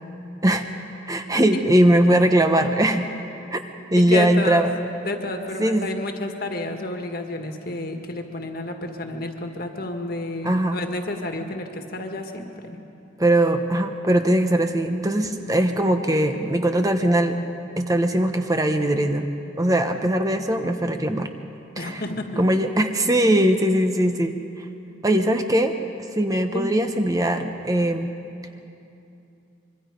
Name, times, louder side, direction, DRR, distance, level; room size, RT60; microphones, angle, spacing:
voice 1, 1.1-3.1 3.5-3.6 3.9-4.7 5.6-5.9 10.4-10.8 13.2-17.4 17.8-19.3 19.6-21.3 21.8-22.0 22.4-24.6 25.0-25.7 26.2-28.1, right 1 dB, 20° right, 6 dB, 0.8 m, -20 dB
voice 2, 4.0-4.7 5.1-12.8 21.8-22.4 26.5-26.7, left 2 dB, 50° left, 4 dB, 1.8 m, -30 dB
25.0 x 23.5 x 5.2 m, 2.7 s
head